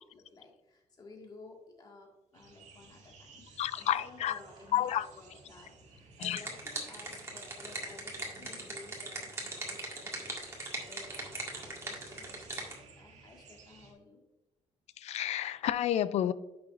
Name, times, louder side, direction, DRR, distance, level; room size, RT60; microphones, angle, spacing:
voice 1, 0.0-14.2, left 2 dB, 35° left, 1.9 m, -54 dB
sound 1, 2.3-13.9, right 4 dB, 70° right, 1.7 m, -57 dB
voice 2, 3.6-4.4 4.7-5.1 6.2-6.4 15.0-16.3, left 11 dB, 60° left, 0.4 m, -30 dB
sound 2, 5.9-12.8, right 2 dB, 20° right, 1.9 m, -40 dB
10.0 x 6.9 x 2.5 m
cardioid pair, 135°, 12 cm